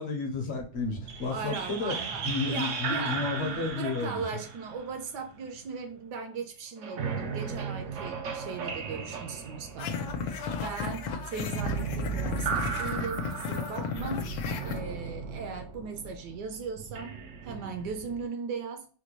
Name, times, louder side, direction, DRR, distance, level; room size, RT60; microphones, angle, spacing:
voice 1, 0.0-4.2, left 4 dB, 50° left, 0.8 m, -32 dB
sound 1, 0.7-5.8 6.8-18.3, right 5 dB, 90° right, 0.6 m, -36 dB
voice 2, 1.3-14.3 14.6-18.9, right 5 dB, 70° right, 1.1 m, -38 dB
sound 2, 9.8-14.8, left 6 dB, 85° left, 1.4 m, -34 dB
4.3 x 2.2 x 3.0 m
omnidirectional pair, 2.0 m